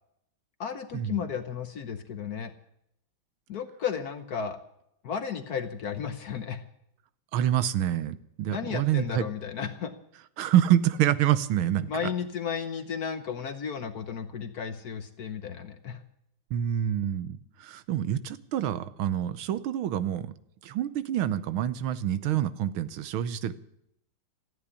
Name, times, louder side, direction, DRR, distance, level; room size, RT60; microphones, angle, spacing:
voice 1, 0.6-2.5 3.5-4.6 5.0-6.7 8.5-9.9 11.9-16.0, left 7 dB, 55° left, 9 dB, 1.2 m, -34 dB
voice 2, 7.3-9.2 10.4-11.9 16.5-20.3 20.6-23.5, right 11 dB, 80° right, 14 dB, 1.6 m, -27 dB
14.5 x 9.7 x 9.8 m, 0.76 s
omnidirectional pair, 2.3 m